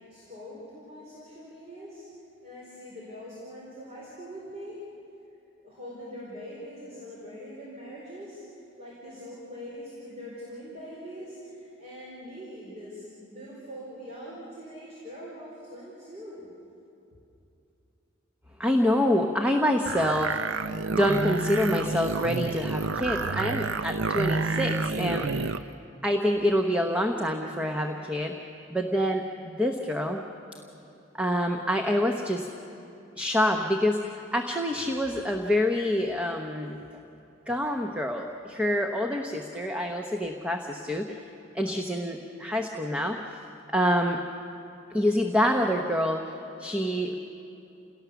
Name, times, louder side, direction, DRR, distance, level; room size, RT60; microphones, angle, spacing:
voice 1, 0.1-2.0 2.4-4.8 5.6-8.4 8.8-16.5, equal, 35° right, -6 dB, 4.3 m, -43 dB
voice 2, 18.6-20.6 20.9-25.6 26.0-28.3 28.7-30.2 31.1-32.5 33.2-36.8 37.5-41.2 41.5-43.2 43.7-44.2 44.9-46.2 46.6-47.2, equal, 5° right, 3 dB, 0.9 m, -26 dB
sound 1, 19.9-25.6, right 4 dB, 85° right, 0.6 m, -29 dB
29.0 x 18.0 x 7.0 m, 2.8 s
head